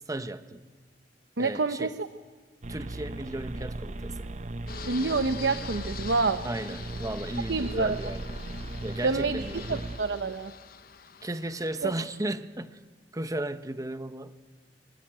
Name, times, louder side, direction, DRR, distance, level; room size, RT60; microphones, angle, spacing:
voice 1, 0.1-0.6 1.4-1.9 2.7-4.3 6.4-8.4 8.8-9.8 11.2-12.8 13.1-14.3, right 1 dB, 20° right, 1.0 m, -35 dB
voice 2, 1.4-1.9 4.9-6.4 7.5-8.0 9.0-10.5 11.8-11.9, right 3 dB, 75° right, 0.9 m, -27 dB
sound 1, 2.6-10.0, right 2 dB, 40° right, 0.8 m, -37 dB
Fixed-wing aircraft airplane, 4.7-12.2, left 7 dB, 55° left, 0.9 m, -45 dB
24.0 x 23.0 x 8.9 m
head